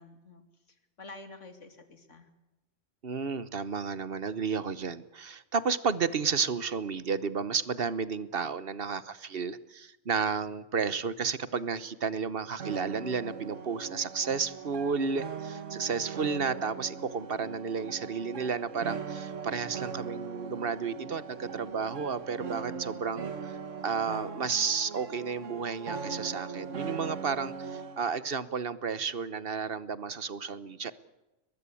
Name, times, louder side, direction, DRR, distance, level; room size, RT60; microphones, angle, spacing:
voice 1, 0.0-2.3, left 2 dB, 75° left, 8 dB, 3.0 m, -49 dB
voice 2, 3.0-23.5 23.8-30.9, right 5 dB, 50° right, 16 dB, 1.2 m, -32 dB
sound 1, 12.6-28.0, right 5 dB, 80° right, 1.8 m, -40 dB
23.0 x 20.5 x 8.4 m, 1.0 s
omnidirectional pair, 1.3 m